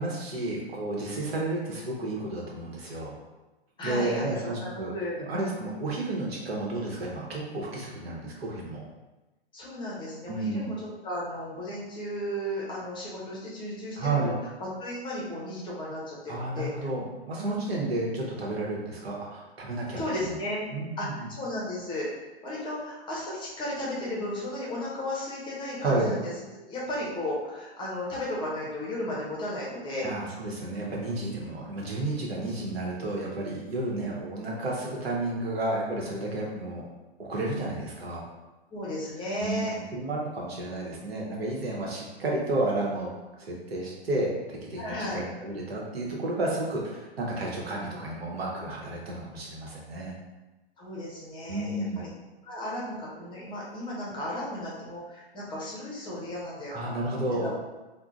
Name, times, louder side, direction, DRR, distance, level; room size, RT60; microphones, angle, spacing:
voice 1, 0.0-3.1 3.8-4.9 5.2-8.8 10.3-10.7 14.0-14.4 16.3-20.4 20.7-21.3 25.8-26.1 30.0-36.8 37.2-38.2 39.4-43.1 43.4-50.2 51.5-52.1 56.7-57.5, right 2 dB, 75° right, -3 dB, 1.0 m, -31 dB
voice 2, 3.8-5.2 9.5-10.8 11.0-14.3 14.6-16.7 17.4-17.8 20.0-20.6 21.0-22.1 22.4-26.3 26.7-30.1 31.1-31.5 38.7-39.7 44.8-45.2 50.8-52.1 52.4-57.5, left 1 dB, 15° left, -5 dB, 0.7 m, -34 dB
3.7 x 2.2 x 2.4 m, 1.1 s
hypercardioid pair, 120°, 31 cm